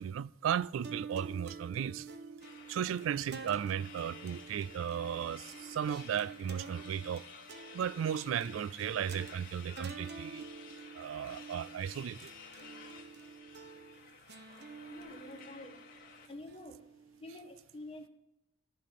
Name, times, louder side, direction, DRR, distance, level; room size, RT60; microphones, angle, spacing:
voice 1, 0.0-2.1 2.7-7.3 7.7-10.5 10.9-12.3, right 8 dB, 85° right, 0.3 m, -35 dB
sound 1, 0.8-17.3, right 4 dB, 60° right, 1.1 m, -49 dB
sound 2, 2.4-16.3, left 6 dB, 50° left, 2.5 m, -53 dB
voice 2, 14.9-15.8 16.3-16.9 17.1-18.1, left 1 dB, 30° left, 1.4 m, -48 dB
13.5 x 6.6 x 4.1 m
head